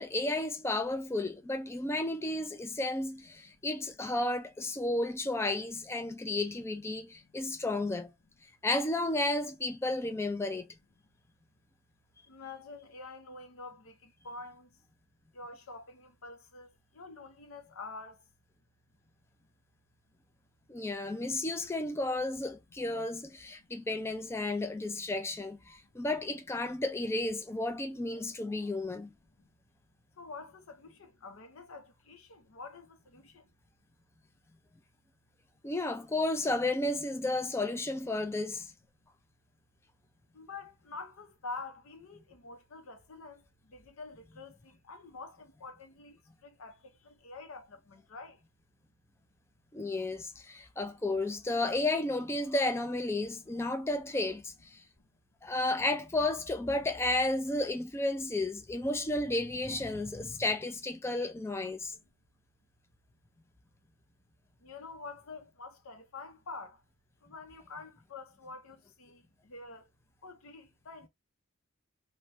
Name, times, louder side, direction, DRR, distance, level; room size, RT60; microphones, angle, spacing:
voice 1, 0.0-8.1 8.6-10.7 20.7-29.1 35.6-38.7 49.7-54.8 55.4-61.9, left 2 dB, 10° left, 0.3 m, -32 dB
voice 2, 12.3-14.8 15.3-18.3 23.6-23.7 29.4-29.5 30.2-33.5 40.3-48.4 60.3-60.4 64.6-66.8 67.2-69.9 70.2-71.1, left 3 dB, 70° left, 0.6 m, -47 dB
2.6 x 2.2 x 3.2 m
head